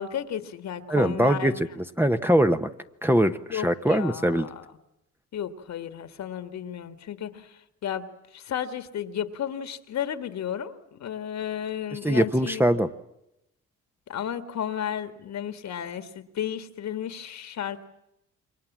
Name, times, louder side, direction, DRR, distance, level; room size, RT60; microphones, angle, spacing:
voice 1, 0.0-1.7 3.5-4.6 5.3-8.1 8.3-12.6 14.1-17.8, left 9 dB, 65° left, 11 dB, 1.9 m, -33 dB
voice 2, 0.9-2.7 3.0-4.5 11.9-12.9, right 1 dB, 5° right, 8 dB, 1.1 m, -22 dB
28.5 x 23.5 x 7.5 m, 0.87 s
cardioid pair, 90°, 30 cm